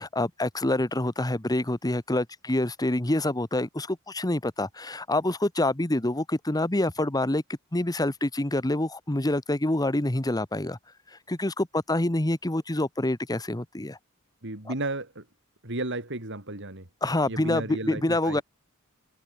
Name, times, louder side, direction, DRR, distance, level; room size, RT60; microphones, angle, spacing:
voice 1, 0.0-7.4 7.7-10.8 11.3-14.0 14.7-14.8 17.0-18.4, left 1 dB, 20° left, 1.3 m, -26 dB
voice 2, 14.4-15.2 15.6-16.9 17.3-18.4, right 2 dB, 60° right, 5.5 m, -33 dB
head